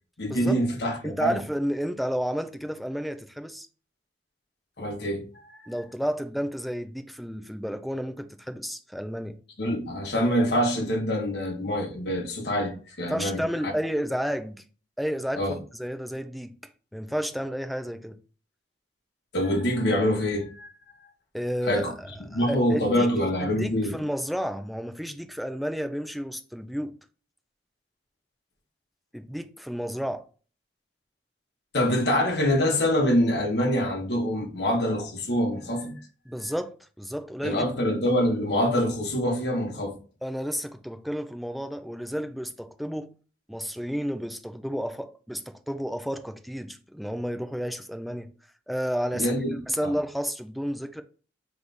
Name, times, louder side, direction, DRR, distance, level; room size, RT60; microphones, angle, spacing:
voice 1, 0.2-1.4 4.8-5.3 9.6-13.7 15.4-15.6 19.3-20.7 21.7-21.9 22.3-24.0 31.7-36.0 37.4-40.0 49.1-49.5 49.8-49.9, equal, 65° left, 1.1 m, -25 dB
voice 2, 1.0-3.7 5.7-9.4 13.1-14.6 15.0-16.6 16.9-18.2 21.3-23.1 23.4-26.9 29.1-30.2 36.3-37.7 40.2-43.1 43.5-48.3 48.7-51.0, equal, ahead, 0.4 m, -31 dB
3.4 x 3.1 x 3.9 m
head